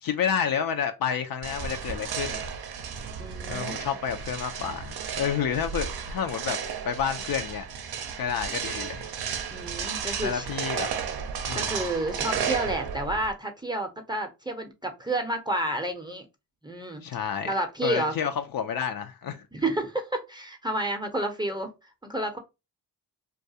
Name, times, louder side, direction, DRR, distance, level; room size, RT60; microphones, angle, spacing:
voice 1, 0.0-2.4 3.5-6.6 6.8-7.6 8.2-9.0 10.2-10.9 11.5-11.8 17.0-17.5 17.8-19.4, left 8 dB, 55° left, 0.5 m, -29 dB
sound 1, 1.4-13.3, right 7 dB, 65° right, 0.6 m, -33 dB
voice 2, 3.2-4.0 9.5-10.5 11.5-16.3 16.6-17.0 17.5-18.1 19.5-21.7 22.0-22.4, right 1 dB, 10° right, 0.6 m, -30 dB
2.3 x 2.3 x 2.7 m
supercardioid pair, 45°, 42 cm